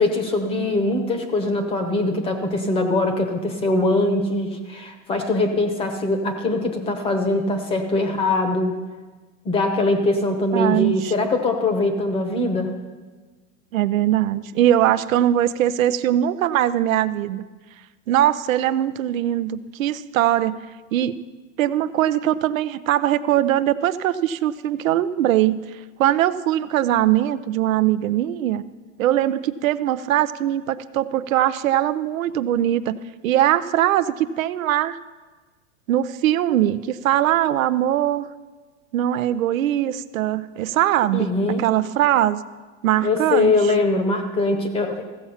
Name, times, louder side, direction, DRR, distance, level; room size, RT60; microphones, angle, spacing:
voice 1, 0.0-8.8 9.4-12.7 41.1-41.7 43.0-45.0, left 2 dB, 15° left, 6 dB, 0.9 m, -22 dB
voice 2, 10.5-11.1 13.7-17.4 18.1-20.7 20.9-21.2 21.6-25.7 26.0-28.6 29.0-35.0 35.9-38.3 38.9-42.4 42.8-43.6, right 12 dB, 85° right, 13 dB, 0.7 m, -21 dB
15.0 x 7.2 x 5.6 m, 1.3 s
supercardioid pair, 160°, 39 cm